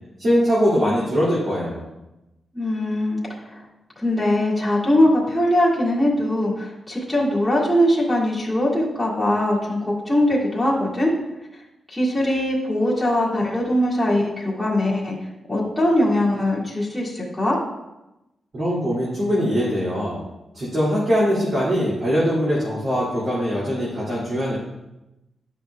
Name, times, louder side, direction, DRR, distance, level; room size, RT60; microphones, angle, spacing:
voice 1, 0.2-1.8 18.5-20.2 20.5-24.6, equal, 40° right, -9 dB, 2.2 m, -22 dB
voice 2, 2.5-3.2 3.4-3.6 4.0-11.1 11.9-15.2 15.5-17.6, left 1 dB, ahead, -9 dB, 1.9 m, -21 dB
11.0 x 5.6 x 2.2 m, 0.95 s
wide cardioid pair, 165°, 0 cm